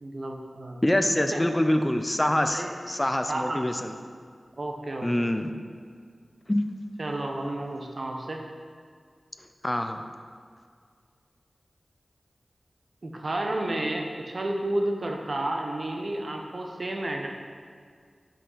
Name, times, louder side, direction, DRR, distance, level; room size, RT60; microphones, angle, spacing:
voice 1, 0.0-0.8 1.3-1.4 2.5-2.7 3.3-3.6 4.6-5.4 7.0-8.4 13.0-17.3, right 1 dB, 55° right, 1 dB, 0.8 m, -31 dB
voice 2, 0.8-3.9 5.0-5.5 6.5-6.7 9.6-10.0, left 1 dB, 15° left, 7 dB, 0.5 m, -25 dB
5.5 x 5.2 x 5.5 m, 2.1 s
wide cardioid pair, 70°, 0 cm